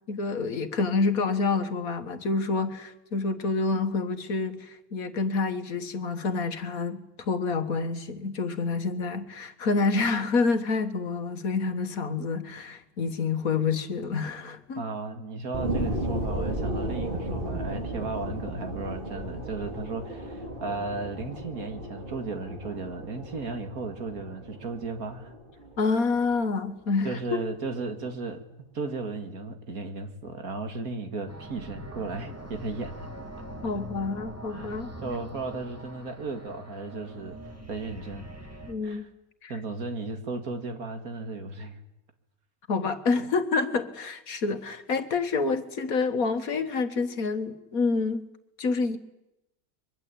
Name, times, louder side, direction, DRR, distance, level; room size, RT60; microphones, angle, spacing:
voice 1, 0.1-14.8 25.8-27.4 33.6-34.9 38.7-39.0 39.4-39.5 42.7-48.2 48.6-49.0, left 4 dB, 70° left, 9 dB, 1.9 m, -28 dB
voice 2, 14.8-25.3 27.0-28.4 28.7-33.1 34.5-37.4 37.7-38.3 38.8-39.1 39.5-41.8, right 3 dB, 75° right, 7 dB, 2.6 m, -35 dB
sound 1, 15.5-26.5 27.0-27.1, right 1 dB, 35° right, 3.3 m, -34 dB
sound 2, 31.3-38.7, right 1 dB, 10° right, 2.6 m, -42 dB
23.0 x 22.5 x 8.6 m, 0.91 s
omnidirectional pair, 1.6 m